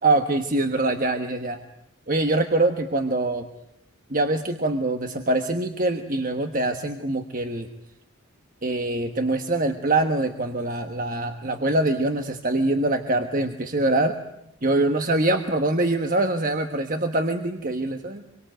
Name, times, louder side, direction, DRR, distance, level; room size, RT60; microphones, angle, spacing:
voice 1, 0.0-1.6 2.1-3.5 4.1-7.7 8.6-14.2 14.6-18.2, right 2 dB, 40° right, 6 dB, 1.3 m, -24 dB
26.0 x 23.5 x 9.2 m, 0.80 s
head